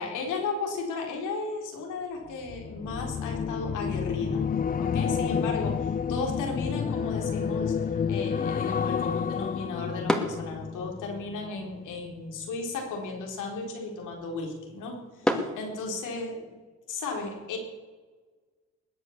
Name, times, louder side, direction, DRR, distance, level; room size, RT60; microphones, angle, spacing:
voice 1, 0.0-4.4 4.8-7.7 8.1-16.5 16.9-17.6, left 3 dB, 90° left, 1 dB, 3.8 m, -35 dB
sound 1, 2.4-11.8 12.1-12.5, left 7 dB, 30° left, 0.5 m, -30 dB
sound 2, 6.3-16.4, equal, ahead, 2.2 m, -37 dB
20.5 x 8.2 x 7.2 m, 1.4 s
cardioid pair, 90°, 30 cm